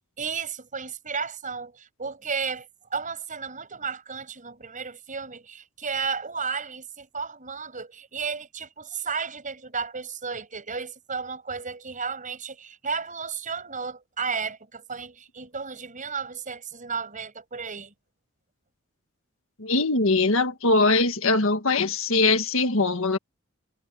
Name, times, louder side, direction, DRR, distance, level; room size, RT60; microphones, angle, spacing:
voice 1, 0.2-17.9, right 5 dB, 40° right, 6.3 m, -33 dB
voice 2, 19.6-23.2, left 3 dB, 65° left, 1.8 m, -22 dB
head